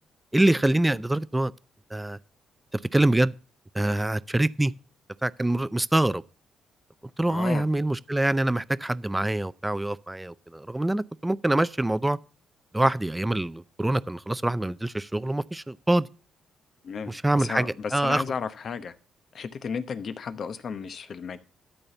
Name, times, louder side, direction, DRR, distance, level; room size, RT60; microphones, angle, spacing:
voice 1, 0.3-1.5 1.9-2.2 2.9-3.3 3.7-4.7 5.2-6.2 7.2-12.2 12.7-16.1 17.1-18.2, right 1 dB, 10° right, 0.4 m, -25 dB
voice 2, 7.3-7.7 16.8-18.9 19.3-21.4, left 6 dB, 55° left, 0.8 m, -34 dB
12.0 x 4.2 x 6.9 m
cardioid pair, 90°, 0 cm